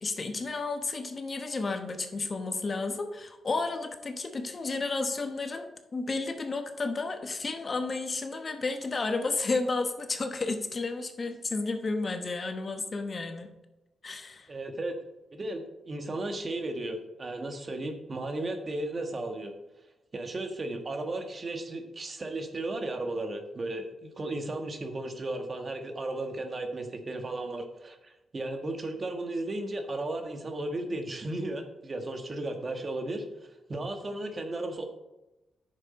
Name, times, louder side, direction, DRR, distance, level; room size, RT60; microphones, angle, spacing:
voice 1, 0.0-13.5 14.0-14.5, left 3 dB, 40° left, 6 dB, 1.2 m, -32 dB
voice 2, 14.5-15.0 15.3-19.5 20.1-33.3 33.7-34.8, right 2 dB, 40° right, 5 dB, 1.5 m, -35 dB
9.8 x 7.0 x 4.3 m, 0.98 s
cardioid pair, 75°, 0 cm